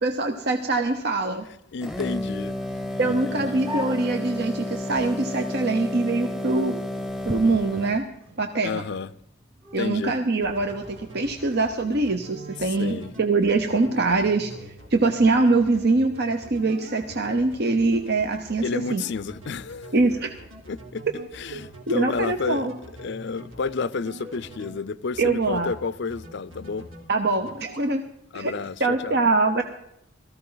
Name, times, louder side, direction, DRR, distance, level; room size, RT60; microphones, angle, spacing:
voice 1, 0.0-1.5 3.0-6.7 7.2-8.1 8.4-8.8 9.7-14.5 14.9-19.0 19.9-20.3 21.5-21.6 21.9-22.7 25.2-25.7 27.1-28.0 28.3-28.5 28.8-29.6, right 3 dB, 55° right, 0.9 m, -23 dB
voice 2, 1.7-2.6 3.0-3.7 8.6-9.1 9.8-10.2 12.8-13.2 18.6-19.9 20.7-21.0 21.3-22.7 23.0-26.9 28.3-29.2, left 4 dB, 60° left, 0.5 m, -31 dB
sound 1, 1.8-8.0, left 1 dB, ahead, 0.9 m, -32 dB
sound 2, 3.6-11.6, equal, 30° right, 1.3 m, -43 dB
sound 3, 10.4-24.8 25.1-25.8 26.1-27.0 27.3-27.9, right 1 dB, 85° right, 3.5 m, -44 dB
18.0 x 14.0 x 4.0 m
head